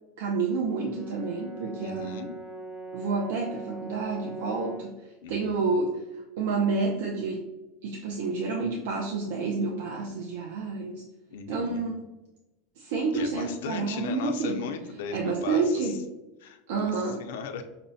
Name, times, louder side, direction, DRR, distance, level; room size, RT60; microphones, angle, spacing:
voice 1, 0.2-2.2 2.9-4.9 5.3-7.5 7.8-11.0 11.5-12.0 12.8-14.6 15.1-16.0 16.7-17.3, right 4 dB, 75° right, 1 dB, 0.5 m, -29 dB
Brass instrument, 0.7-5.0, right 2 dB, 10° right, 0.3 m, -41 dB
voice 2, 1.8-2.3 5.2-5.7 11.3-11.8 13.1-16.0 16.4-17.6, left 6 dB, 85° left, 6 dB, 0.5 m, -37 dB
5.8 x 2.1 x 2.6 m, 1.0 s
supercardioid pair, 175°, 0 cm